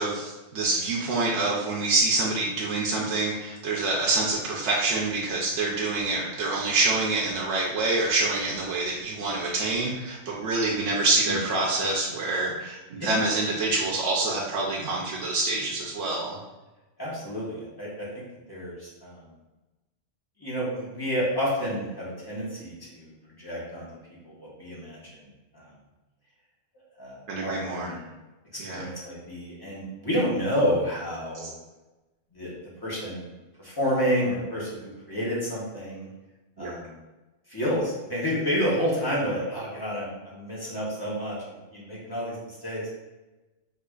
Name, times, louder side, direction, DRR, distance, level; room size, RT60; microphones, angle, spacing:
voice 1, 0.0-16.4 27.3-27.9 28.6-28.8 36.6-36.7, right 3 dB, 75° right, -4 dB, 0.9 m, -26 dB
voice 2, 17.0-18.1 18.5-19.2 20.4-23.1 23.4-23.9 24.2-25.3 25.5-25.7 27.0-28.1 28.5-31.5 32.3-32.5 32.8-33.3 33.6-34.8 35.1-36.1 36.6-37.0 37.5-42.9, equal, 20° left, -6 dB, 0.8 m, -30 dB
4.6 x 2.4 x 2.3 m, 1.1 s
omnidirectional pair, 1.2 m